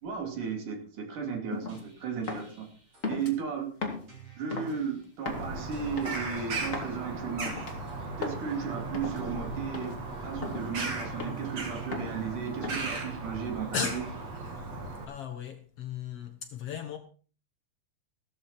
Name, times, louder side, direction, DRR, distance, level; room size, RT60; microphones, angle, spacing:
voice 1, 0.0-2.7 3.1-3.8 4.4-7.5 8.2-14.0, right 6 dB, 75° right, 4.4 m, -35 dB
sound 1, 1.5-1.8 2.3-2.5 3.0-3.3 3.8-4.1 4.5-4.8 5.3-5.5 6.0-6.2 6.7-7.0 7.4-7.7 8.2-8.4 8.9-9.2 9.7-10.0 10.4-10.7 11.2-11.5 11.9-12.2 12.6-13.0, left 3 dB, 25° left, 2.5 m, -36 dB
sound 2, 1.7-3.1 4.1-5.1 5.7-6.9 7.8-13.4, right 10 dB, 40° right, 4.4 m, -48 dB
Bird vocalization bird call bird song, 5.3-15.1, right 2 dB, 55° right, 3.8 m, -37 dB
voice 2, 13.7-14.1 14.4-14.7 15.1-17.0, left 6 dB, 60° left, 1.7 m, -36 dB
15.5 x 13.5 x 4.2 m
omnidirectional pair, 3.7 m